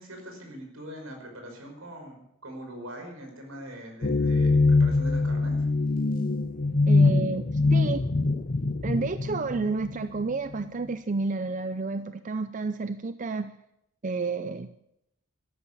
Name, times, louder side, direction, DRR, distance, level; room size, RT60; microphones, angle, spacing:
voice 1, 0.0-5.6, equal, 75° right, 3 dB, 5.4 m, -42 dB
sound 1, 4.0-10.6, left 3 dB, 40° left, 0.7 m, -23 dB
voice 2, 6.9-8.0 8.8-13.5 14.0-14.7, right 3 dB, 35° right, 11 dB, 0.5 m, -30 dB
13.0 x 12.5 x 8.3 m, 0.82 s
head